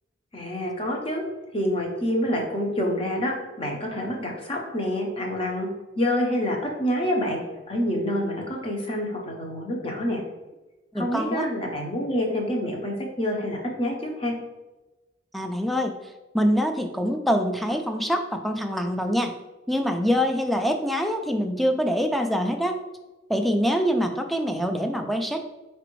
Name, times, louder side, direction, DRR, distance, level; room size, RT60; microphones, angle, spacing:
voice 1, 0.3-1.2 1.5-3.3 3.6-5.7 6.0-7.4 7.7-10.2 11.0-14.3, equal, 30° left, 0 dB, 0.8 m, -27 dB
voice 2, 10.9-11.5 15.3-15.9 16.3-19.3 19.7-22.8 23.3-25.5, equal, ahead, 5 dB, 0.3 m, -24 dB
4.9 x 3.4 x 3.0 m, 1.1 s
head